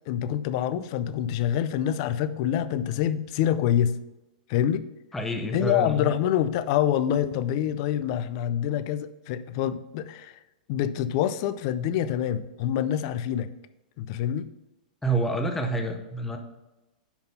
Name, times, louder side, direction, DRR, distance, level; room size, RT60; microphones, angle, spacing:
voice 1, 0.1-4.0 4.5-4.9 5.5-10.3 10.7-13.5 14.0-14.5, left 10 dB, 35° left, 14 dB, 0.4 m, -26 dB
voice 2, 5.1-6.1 15.0-16.4, right 2 dB, 5° left, 4 dB, 0.7 m, -28 dB
10.0 x 3.9 x 5.3 m, 1.0 s
supercardioid pair, 170°, 4 cm